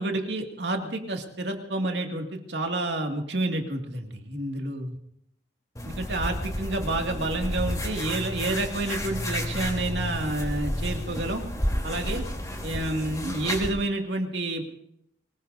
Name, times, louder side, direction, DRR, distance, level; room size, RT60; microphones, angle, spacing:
voice 1, 0.0-5.0 5.8-11.4 11.8-12.2 12.6-14.6, right 2 dB, 70° right, 3 dB, 2.3 m, -29 dB
sound 1, 5.8-13.7, equal, 20° left, 3.5 m, -31 dB
24.5 x 19.0 x 2.7 m, 0.75 s
head